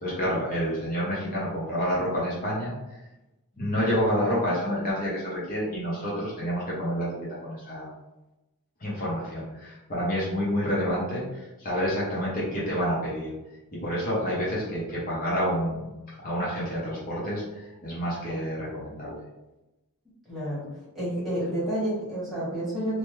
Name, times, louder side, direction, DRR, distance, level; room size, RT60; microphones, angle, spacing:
voice 1, 0.0-2.7 3.6-7.9 8.8-13.3 13.7-15.9 16.2-19.2, equal, 40° left, -7 dB, 0.9 m, -28 dB
voice 2, 20.3-20.7 20.9-23.0, right 1 dB, ahead, -10 dB, 1.4 m, -29 dB
2.9 x 2.2 x 3.1 m, 1.0 s
head